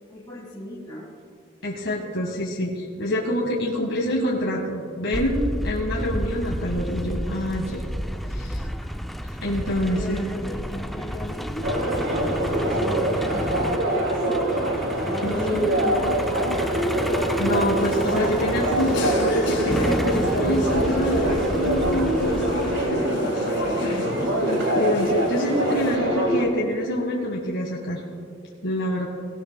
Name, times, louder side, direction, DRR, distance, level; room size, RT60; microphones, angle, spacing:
voice 1, 0.1-1.1 9.9-13.6 15.0-16.6 23.5-23.6, left 2 dB, 20° left, -5 dB, 1.8 m, -35 dB
voice 2, 1.6-7.8 8.3-8.7 9.4-10.3 15.2-15.3 17.4-23.2 24.4-28.0 28.6-29.1, equal, 75° left, -2 dB, 1.6 m, -26 dB
Truck, 5.1-22.9, equal, ahead, 0.4 m, -31 dB
sound 1, 11.6-26.4, right 1 dB, 70° right, 2.4 m, -24 dB
sound 2, 17.8-26.0, left 1 dB, 60° left, 2.5 m, -32 dB
19.0 x 17.5 x 2.2 m, 2.5 s
head